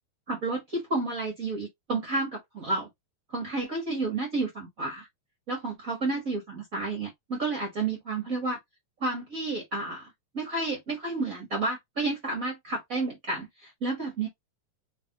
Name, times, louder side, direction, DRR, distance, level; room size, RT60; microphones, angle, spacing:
voice 1, 0.3-2.9 3.3-5.1 5.5-8.6 9.0-14.3, right 3 dB, 65° right, 0.8 m, -31 dB
5.2 x 3.0 x 2.8 m
omnidirectional pair, 3.7 m